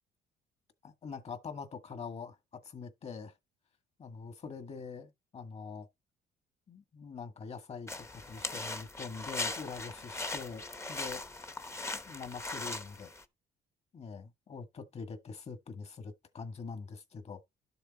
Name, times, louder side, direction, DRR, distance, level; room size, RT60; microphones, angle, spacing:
voice 1, 0.8-3.3 4.0-5.9 6.7-11.2 12.1-13.1 13.9-17.4, left 5 dB, 40° left, 1.9 m, -44 dB
sound 1, 7.9-13.2, left 2 dB, 15° left, 1.0 m, -39 dB
12.0 x 6.8 x 4.2 m
cardioid pair, 110°, 17 cm